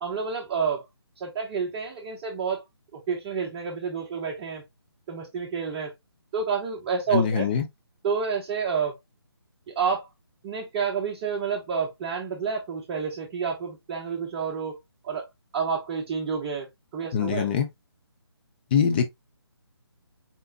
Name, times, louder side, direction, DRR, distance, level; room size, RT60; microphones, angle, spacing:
voice 1, 0.0-0.8 1.2-2.6 2.9-4.6 5.1-5.9 6.3-7.5 8.0-9.0 9.7-10.1 10.4-14.8 15.0-15.3 15.5-16.7 16.9-17.5, right 6 dB, 20° right, 0.9 m, -29 dB
voice 2, 7.1-7.6 17.1-17.7 18.7-19.0, left 7 dB, 25° left, 0.6 m, -23 dB
4.4 x 3.3 x 2.8 m
figure-of-eight pair, 150°, 14 cm